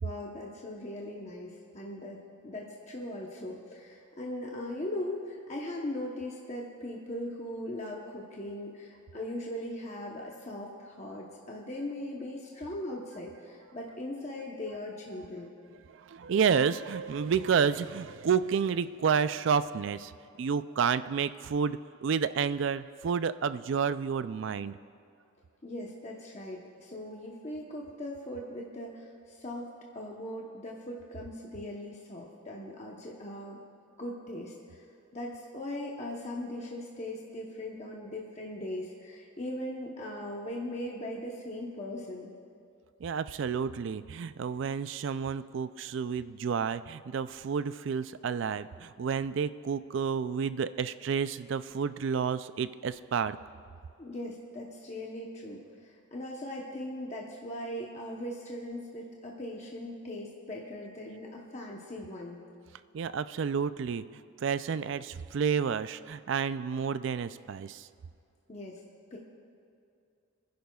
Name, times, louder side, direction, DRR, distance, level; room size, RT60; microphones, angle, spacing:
voice 1, 0.0-15.5 25.6-33.6 34.0-34.8 35.1-42.3 54.0-62.4 68.5-68.8 69.1-69.2, left 1 dB, 35° left, -2 dB, 0.9 m, -39 dB
voice 2, 15.9-20.1 20.4-24.8 43.0-53.4 62.9-67.9, right 6 dB, 60° right, 14 dB, 0.3 m, -30 dB
28.0 x 10.5 x 2.3 m, 2.5 s
head